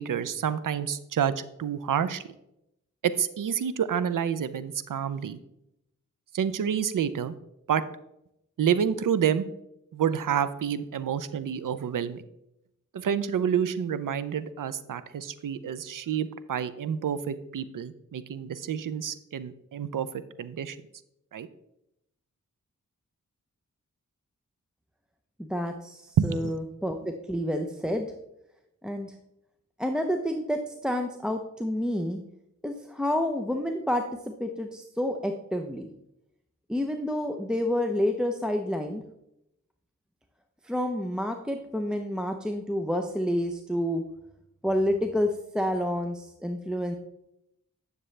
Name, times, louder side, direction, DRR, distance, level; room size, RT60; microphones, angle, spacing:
voice 1, 0.0-1.3 1.6-2.2 3.0-5.4 6.3-7.3 7.7-7.8 8.6-9.5 9.9-12.2 12.9-20.8 21.3-21.5 26.2-26.5, right 8 dB, 80° right, 14 dB, 0.6 m, -28 dB
voice 2, 25.4-28.1 28.8-29.1 29.8-32.2 32.6-35.9 36.7-39.0 40.6-44.0 44.6-47.0, equal, ahead, 4 dB, 0.6 m, -29 dB
10.0 x 6.7 x 3.3 m, 0.83 s
wide cardioid pair, 65°, 32 cm